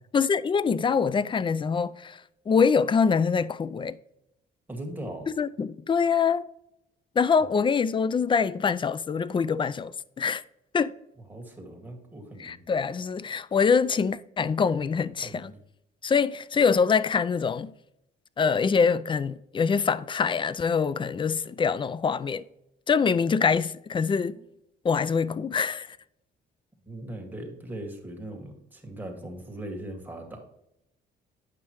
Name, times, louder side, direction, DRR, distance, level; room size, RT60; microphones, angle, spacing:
voice 1, 0.1-2.2 2.5-4.0 5.4-6.4 7.2-10.4 10.7-10.9 12.4-15.5 16.0-17.7 18.4-22.4 22.9-24.4 24.8-25.9, left 5 dB, 25° left, 0.3 m, -24 dB
voice 2, 4.7-5.3 11.3-12.6 15.1-15.6 24.3-24.4 26.9-30.4, right 1 dB, 10° right, 1.8 m, -39 dB
8.9 x 5.5 x 3.0 m
cardioid pair, 90°, 20 cm